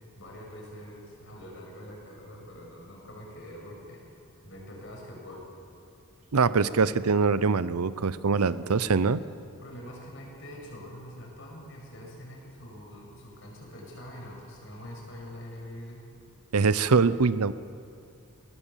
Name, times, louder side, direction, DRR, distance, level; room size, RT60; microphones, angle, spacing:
voice 1, 0.1-4.0 4.4-5.5 8.3-8.4 9.6-16.1, equal, 55° left, -1 dB, 6.4 m, -44 dB
voice 2, 6.3-9.2 16.5-17.5, right 4 dB, 85° right, 16 dB, 0.7 m, -23 dB
22.5 x 17.0 x 7.4 m, 2.5 s
head